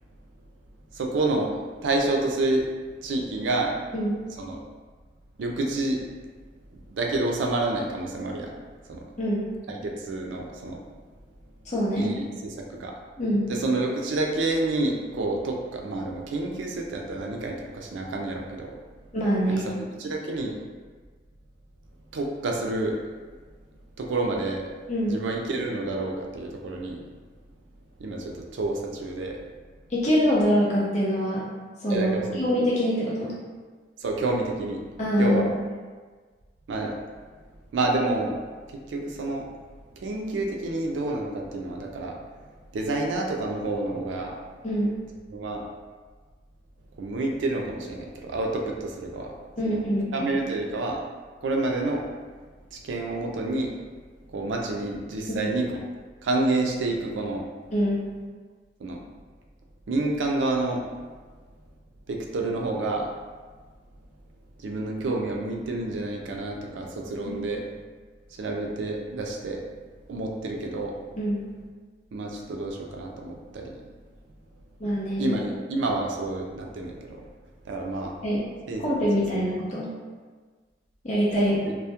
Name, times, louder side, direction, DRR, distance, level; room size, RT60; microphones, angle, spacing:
voice 1, 0.9-1.5 1.8-2.7 3.0-3.7 4.4-4.6 5.4-6.0 6.9-8.5 8.9-9.0 9.7-10.8 12.0-12.9 13.5-18.8 19.5-19.7 20.0-20.6 22.1-23.0 24.0-24.6 25.1-27.0 28.0-29.4 31.9-32.4 34.0-34.8 35.2-35.5 36.7-37.0 37.7-38.4 38.9-39.5 40.0-42.2 42.7-44.4 45.3-45.6 47.0-49.3 49.6-49.8 50.1-51.0 51.4-52.0 52.7-53.7 54.3-55.8 56.2-57.5 58.8-59.0 59.9-60.8 62.1-63.1 64.6-67.6 68.4-69.6 70.1-70.9 72.1-73.8 75.2-77.2 77.7-78.1 78.7-78.8 79.2-79.4 81.4-81.7, right 2 dB, 85° right, 1 dB, 0.4 m, -28 dB
voice 2, 11.7-12.1 13.2-13.4 19.1-19.7 24.9-25.1 29.9-31.5 31.8-33.3 35.0-35.4 44.6-44.9 49.6-50.3 57.7-58.0 67.3-67.4 71.2-71.4 74.8-75.3 78.2-78.5 78.8-79.9 81.0-81.5, equal, 40° left, -7 dB, 0.6 m, -24 dB
2.2 x 2.1 x 2.8 m, 1.5 s
head